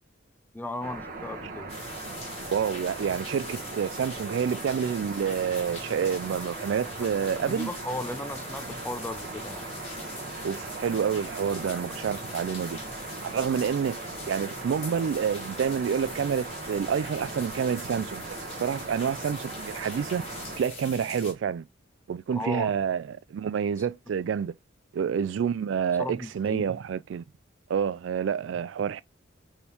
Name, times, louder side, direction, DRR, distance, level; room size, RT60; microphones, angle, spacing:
voice 1, 0.5-1.7 7.5-9.7 22.3-22.8 23.8-23.9 26.0-26.7, left 2 dB, 10° left, 0.4 m, -36 dB
sound 1, 0.8-20.6, right 3 dB, 45° right, 1.0 m, -39 dB
sound 2, 1.7-21.3, left 3 dB, 30° left, 1.7 m, -43 dB
voice 2, 2.5-7.7 10.4-12.8 13.2-20.2 20.6-21.6 22.1-24.5 24.9-27.2 27.7-29.0, right 7 dB, 65° right, 0.3 m, -28 dB
4.4 x 3.4 x 2.8 m
head